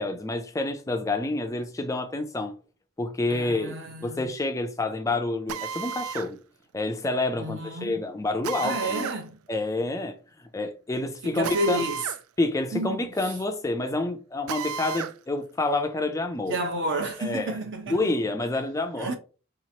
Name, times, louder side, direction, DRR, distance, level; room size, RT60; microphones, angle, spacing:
voice 1, 0.0-2.5 3.0-3.7 4.0-6.4 6.7-9.1 9.5-10.2 10.5-11.9 12.4-16.6 17.2-17.6 17.9-19.1, left 2 dB, 15° left, 0.4 m, -28 dB
voice 2, 3.3-4.2 7.4-8.0 8.6-9.4 11.2-12.0 12.7-13.3 16.5-18.1 19.0-19.1, right 1 dB, 55° right, 0.9 m, -31 dB
Drill, 5.5-6.3 8.4-9.2 11.4-12.2 12.6-12.7 14.5-15.2, right 7 dB, 80° right, 0.3 m, -33 dB
5.0 x 2.9 x 2.8 m
head